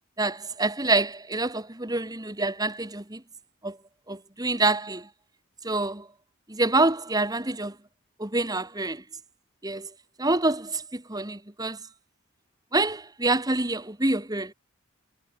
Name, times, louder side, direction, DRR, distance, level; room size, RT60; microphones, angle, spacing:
voice 1, 0.2-3.2 3.6-3.8 4.1-5.1 5.6-6.1 6.5-7.8 8.2-9.0 9.6-9.9 10.2-11.8 12.7-14.5, right 2 dB, 15° right, 1.9 m, -26 dB
head